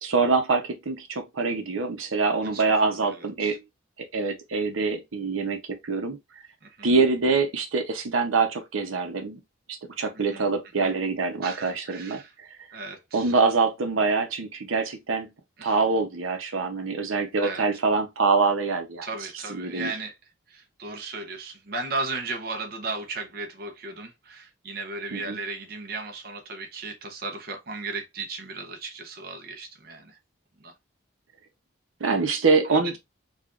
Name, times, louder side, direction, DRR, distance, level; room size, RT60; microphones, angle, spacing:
voice 1, 0.0-3.6 4.1-6.2 6.8-9.4 10.0-12.5 13.1-15.3 15.6-19.1 19.5-19.9 25.1-25.4 32.0-33.0, right 4 dB, 90° right, 0.7 m, -25 dB
voice 2, 3.0-3.6 4.6-4.7 6.6-6.9 10.3-10.5 10.8-10.9 11.4-12.3 12.7-13.3 15.6-15.8 17.4-17.6 19.0-20.2 20.5-30.2 30.6-30.7 32.6-33.0, right 3 dB, 50° right, 0.7 m, -36 dB
4.8 x 2.4 x 2.4 m
head